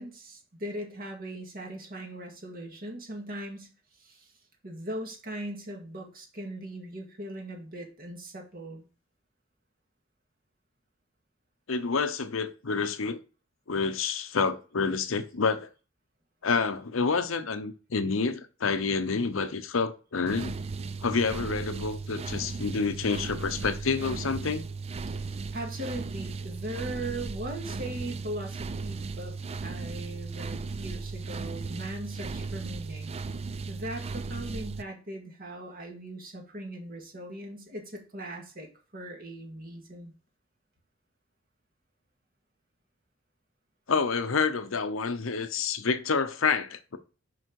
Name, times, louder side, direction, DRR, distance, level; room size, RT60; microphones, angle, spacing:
voice 1, 0.0-3.7 4.0-4.3 4.6-8.9 25.1-25.2 25.5-29.3 29.6-33.1 33.7-40.1, right 1 dB, 45° right, 2.0 m, -39 dB
voice 2, 11.7-13.2 13.7-15.7 16.4-20.6 21.0-24.6 43.9-47.0, left 4 dB, 85° left, 0.8 m, -28 dB
sound 1, 20.3-34.8, right 4 dB, 30° right, 0.4 m, -36 dB
6.3 x 5.5 x 4.6 m
head